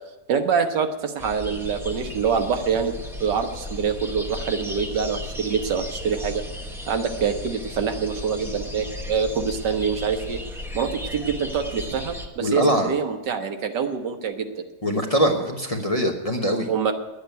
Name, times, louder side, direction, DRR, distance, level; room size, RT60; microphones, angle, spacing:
voice 1, 0.3-2.9 3.2-6.4 6.9-10.4 10.7-14.7 16.7-16.9, right 6 dB, 90° right, 5 dB, 1.8 m, -25 dB
sound 1, 1.2-12.3, left 1 dB, ahead, 0.7 m, -35 dB
voice 2, 12.4-12.9 14.8-16.7, equal, 25° left, 2 dB, 0.8 m, -22 dB
10.5 x 8.1 x 9.2 m, 1.1 s
omnidirectional pair, 1.8 m